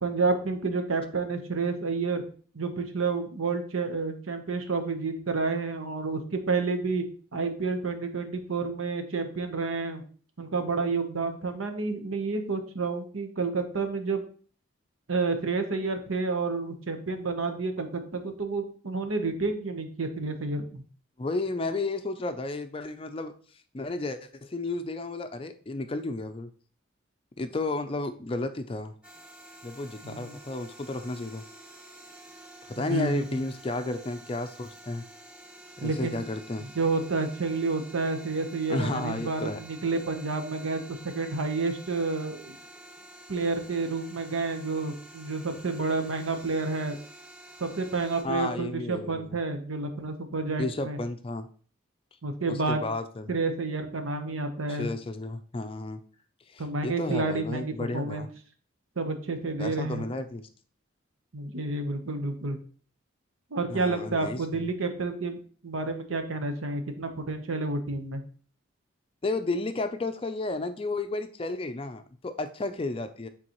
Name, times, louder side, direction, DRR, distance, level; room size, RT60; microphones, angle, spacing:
voice 1, 0.0-2.2 2.5-7.0 7.3-10.0 10.4-14.2 15.1-20.8 30.0-30.4 32.8-33.2 35.8-36.2 36.7-42.6 43.3-47.0 47.6-51.0 52.2-52.8 53.3-54.9 56.6-58.3 59.0-60.0 61.3-62.6 63.5-68.2, right 3 dB, 85° right, 7 dB, 0.9 m, -30 dB
voice 2, 21.2-23.3 23.7-26.5 27.4-28.9 29.6-31.4 32.7-35.0 35.8-36.6 38.7-39.6 48.2-49.4 50.6-51.5 52.5-53.3 54.7-56.0 56.5-58.3 59.6-60.5 63.7-64.6 69.2-73.3, left 2 dB, 25° left, 9 dB, 0.4 m, -32 dB
sound 1, 29.0-48.2, right 1 dB, 5° right, 0.9 m, -49 dB
8.9 x 3.9 x 3.0 m, 0.44 s
head